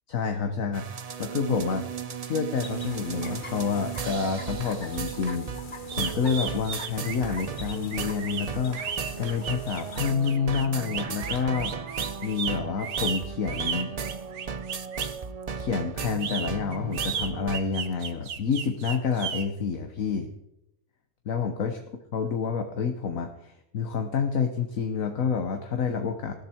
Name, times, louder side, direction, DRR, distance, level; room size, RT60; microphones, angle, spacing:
voice 1, 0.1-0.9 1.2-1.9 2.2-11.9 12.2-13.9 15.6-20.3 21.2-21.8 22.1-26.3, left 6 dB, 65° left, 6 dB, 1.6 m, -28 dB
sound 1, 0.7-17.6, right 6 dB, 40° right, 0.5 m, -36 dB
sound 2, 2.6-10.1, left 3 dB, 35° left, 1.6 m, -44 dB
sound 3, 5.9-15.2 16.0-19.4, right 7 dB, 90° right, 1.7 m, -34 dB
19.0 x 14.0 x 4.5 m, 0.87 s
omnidirectional pair, 1.5 m